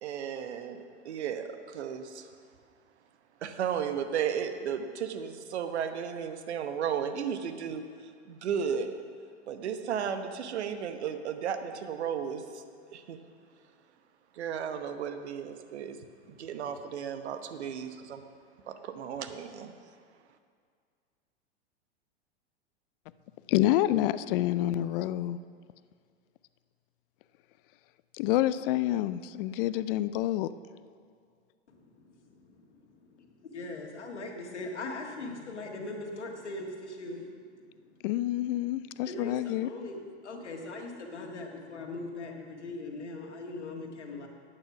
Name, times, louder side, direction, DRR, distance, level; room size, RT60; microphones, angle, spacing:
voice 1, 0.0-2.3 3.4-9.0 9.5-12.6 12.9-13.2 14.3-16.0 16.3-18.2 18.7-19.7, right 7 dB, 75° right, 9 dB, 1.0 m, -34 dB
voice 2, 23.5-25.4 28.1-30.5 38.0-39.7, left 14 dB, 55° left, 15 dB, 0.5 m, -28 dB
voice 3, 33.4-37.3 39.0-40.0 40.2-44.3, left 2 dB, 90° left, 2 dB, 1.8 m, -39 dB
10.5 x 9.0 x 5.8 m, 2.1 s
hypercardioid pair, 105°, 33 cm